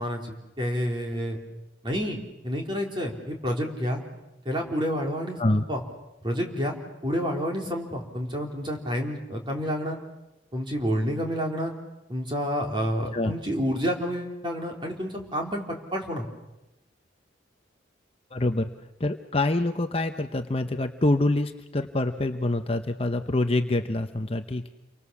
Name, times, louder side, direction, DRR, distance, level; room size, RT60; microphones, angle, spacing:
voice 1, 0.0-1.4 1.8-4.0 4.5-5.8 6.2-6.8 7.0-10.0 10.5-11.7 12.1-16.3, equal, 25° right, 1 dB, 3.9 m, -29 dB
voice 2, 18.3-18.7 19.0-24.7, left 2 dB, 30° left, 7 dB, 0.9 m, -26 dB
29.0 x 23.5 x 7.2 m, 0.95 s
head